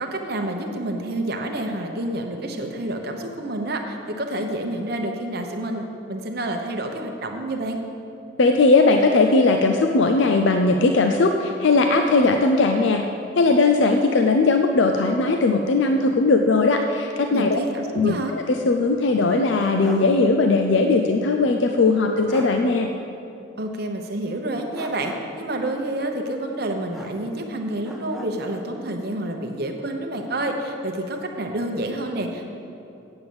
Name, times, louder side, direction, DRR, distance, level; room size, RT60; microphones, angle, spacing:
voice 1, 0.0-7.8 17.3-18.3 23.6-32.4, right 1 dB, 50° right, 3 dB, 0.9 m, -28 dB
voice 2, 8.4-13.0 13.4-17.6 17.9-22.9, left 3 dB, 65° left, 4 dB, 0.5 m, -19 dB
sound 1, 19.2-20.2 20.5-20.6 21.9-22.0 22.3-22.6 24.7-25.5 26.9-27.5 27.8-28.7, equal, ahead, 0.7 m, -40 dB
8.8 x 7.8 x 7.0 m, 2.7 s
head